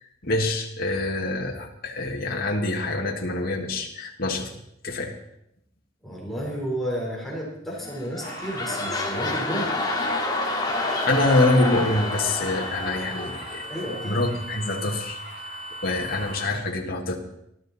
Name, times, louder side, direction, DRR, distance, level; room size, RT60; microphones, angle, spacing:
voice 1, 0.0-4.5 4.8-5.2 10.5-10.7 11.1-13.7 14.0-17.2, left 2 dB, 50° left, 0 dB, 1.8 m, -26 dB
voice 2, 6.0-9.7 13.7-14.2, equal, ahead, -3 dB, 3.9 m, -31 dB
sound 1, 7.8-14.3 14.9-15.0, left 2 dB, 20° left, 2.1 m, -29 dB
sound 2, 8.2-16.5, right 1 dB, 55° right, 7.6 m, -38 dB
19.0 x 13.0 x 4.1 m, 0.77 s
head